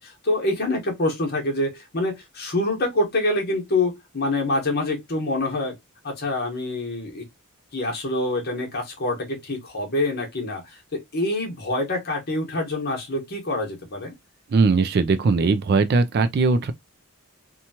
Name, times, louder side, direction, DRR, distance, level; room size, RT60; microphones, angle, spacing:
voice 1, 0.0-5.7 6.0-7.2 7.7-10.6 10.9-14.1, left 2 dB, 45° left, 1.1 m, -26 dB
voice 2, 14.5-16.7, right 4 dB, 45° right, 0.3 m, -19 dB
2.9 x 2.3 x 2.7 m
head